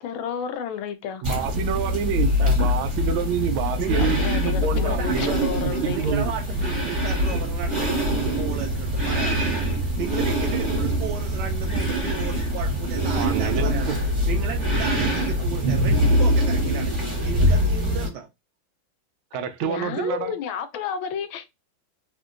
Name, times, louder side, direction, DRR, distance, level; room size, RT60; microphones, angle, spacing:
voice 1, 0.0-1.2 4.0-6.2 19.6-21.5, left 7 dB, 80° left, 1.3 m, -31 dB
sound 1, 1.2-18.1, equal, 25° right, 1.1 m, -23 dB
voice 2, 1.2-6.3 13.1-14.0 19.3-20.3, right 8 dB, 90° right, 1.4 m, -27 dB
voice 3, 3.8-4.1 4.7-5.4 5.7-13.9 14.2-16.9 17.2-18.3, right 7 dB, 75° right, 1.0 m, -35 dB
3.6 x 2.5 x 2.4 m
omnidirectional pair, 2.2 m